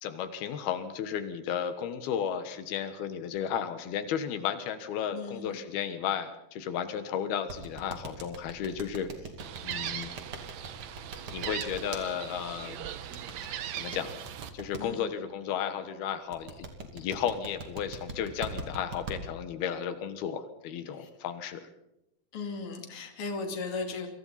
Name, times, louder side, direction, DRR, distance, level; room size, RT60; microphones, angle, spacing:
voice 1, 0.0-9.1 9.6-10.1 11.3-12.9 13.7-14.3 14.5-16.7 16.9-21.7, left 8 dB, 85° left, 10 dB, 3.3 m, -34 dB
voice 2, 5.1-5.6 14.8-15.0 21.0-21.1 22.3-24.1, left 4 dB, 40° left, 4 dB, 3.2 m, -36 dB
sound 1, 7.5-12.0 13.1-14.8 16.3-19.2, right 3 dB, 40° right, 3.0 m, -40 dB
Gull seagull, 9.4-14.5, right 10 dB, 65° right, 1.8 m, -39 dB
28.5 x 25.0 x 4.2 m, 0.87 s
omnidirectional pair, 4.3 m